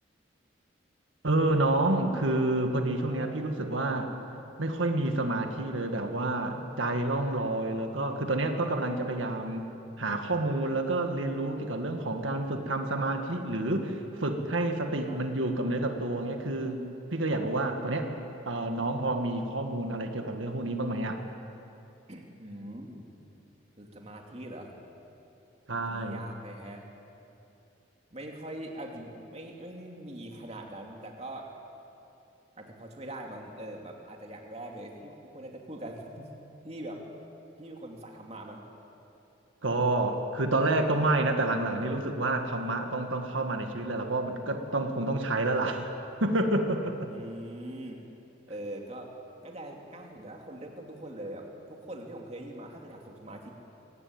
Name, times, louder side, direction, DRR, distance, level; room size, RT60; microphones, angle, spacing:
voice 1, 1.2-4.1 4.6-9.7 10.0-16.9 17.1-18.1 18.5-21.2 25.7-26.2 39.6-45.9 46.2-47.1, right 2 dB, 90° right, 5 dB, 1.8 m, -29 dB
voice 2, 13.6-14.4 15.0-15.2 22.1-23.0 23.8-24.7 25.8-26.8 28.1-31.5 32.6-36.3 36.6-37.0 37.6-38.6 47.1-48.0 48.5-49.1 49.4-53.5, right 1 dB, 35° right, 1 dB, 2.7 m, -42 dB
24.5 x 18.5 x 8.9 m, 2.8 s
head